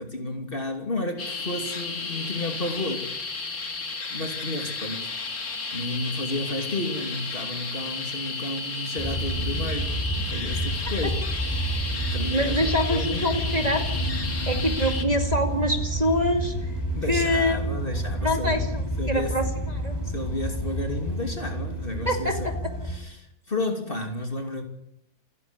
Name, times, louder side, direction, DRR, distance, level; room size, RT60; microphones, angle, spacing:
voice 1, 0.0-3.1 4.1-5.1 5.7-11.2 11.5-13.3 16.9-18.6 19.0-19.4 20.0-22.5 22.8-24.6, left 2 dB, 35° left, 3.0 m, -32 dB
sound 1, 1.2-15.0, left 4 dB, 65° left, 2.7 m, -33 dB
sound 2, 9.0-23.0, right 1 dB, 15° left, 3.7 m, -29 dB
voice 2, 12.3-13.9 14.5-16.8 17.1-17.6 18.2-20.0 22.1-22.5, equal, 25° right, 2.5 m, -25 dB
28.5 x 11.0 x 9.9 m
omnidirectional pair, 1.7 m